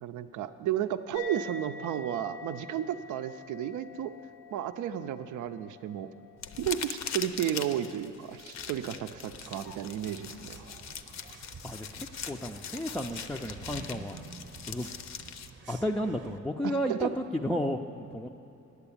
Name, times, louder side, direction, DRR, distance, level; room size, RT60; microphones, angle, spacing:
voice 1, 0.0-4.1 4.5-6.1 6.6-10.6 16.6-17.1, right 10 dB, 80° right, 10 dB, 0.6 m, -33 dB
sound 1, 1.1-8.0, left 4 dB, 80° left, 1.0 m, -47 dB
sound 2, 6.4-15.5, left 7 dB, 60° left, 0.7 m, -41 dB
sound 3, 8.6-16.4, right 4 dB, 40° right, 0.8 m, -49 dB
voice 2, 11.6-14.2 14.7-14.9 15.7-18.3, equal, 5° left, 1 dB, 0.4 m, -33 dB
9.6 x 8.0 x 8.5 m, 2.8 s
cardioid pair, 90°, 30 cm